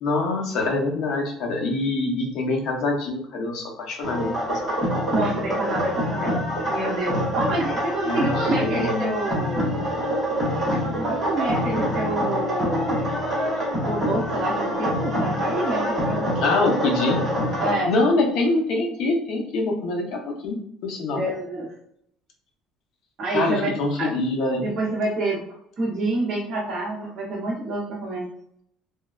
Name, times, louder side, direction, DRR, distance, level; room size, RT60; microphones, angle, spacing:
voice 1, 0.0-4.8 8.1-9.1 16.4-17.2 17.9-21.2 23.3-24.7, left 2 dB, 50° left, 1 dB, 0.6 m, -25 dB
sound 1, 4.0-17.7, equal, 15° right, 1.0 m, -26 dB
voice 2, 5.1-6.4 6.7-9.7 10.7-13.1 13.8-16.3 17.6-17.9 21.1-21.7 23.2-23.7 24.0-24.1 24.6-25.4 25.8-28.3, right 2 dB, 35° right, -6 dB, 0.6 m, -27 dB
Alarm, 9.2-18.1, left 5 dB, 80° left, 1.4 m, -38 dB
3.1 x 2.2 x 2.3 m, 0.69 s
cardioid pair, 180°, 0 cm